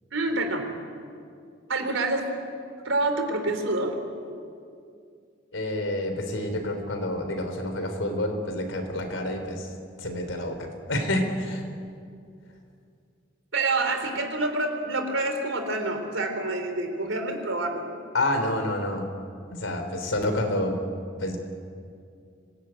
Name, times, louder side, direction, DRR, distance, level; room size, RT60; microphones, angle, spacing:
voice 1, 0.1-0.7 1.7-2.2 2.8-4.0 13.5-18.0, right 2 dB, 90° right, 5 dB, 3.9 m, -27 dB
voice 2, 5.5-9.7 10.0-11.6 18.1-19.1 19.5-20.7 21.2-21.4, left 1 dB, 85° left, 6 dB, 3.8 m, -28 dB
26.0 x 18.5 x 9.0 m, 2.3 s
head